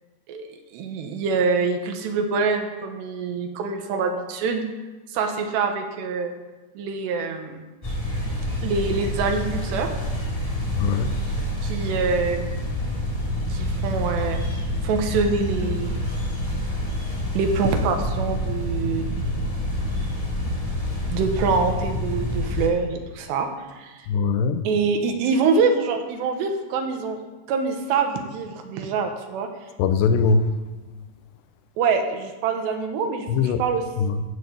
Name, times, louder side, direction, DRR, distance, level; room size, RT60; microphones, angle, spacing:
voice 1, 0.7-4.6 5.1-6.3 6.8-7.6 8.6-9.9 11.6-12.5 13.5-14.4 14.8-15.9 17.3-19.2 20.5-20.6 21.1-23.5 23.8-23.9 24.6-27.2 27.5-29.5 31.8-33.3 33.6-33.8, right 4 dB, 80° right, 5 dB, 3.3 m, -25 dB
sound 1, 7.8-22.7, left 1 dB, 20° left, 1.0 m, -27 dB
voice 2, 10.8-11.1 24.1-24.6 29.8-30.5 33.3-33.6 34.0-34.2, left 5 dB, 85° left, 9 dB, 2.8 m, -21 dB
15.5 x 6.9 x 6.9 m, 1.2 s
omnidirectional pair, 5.1 m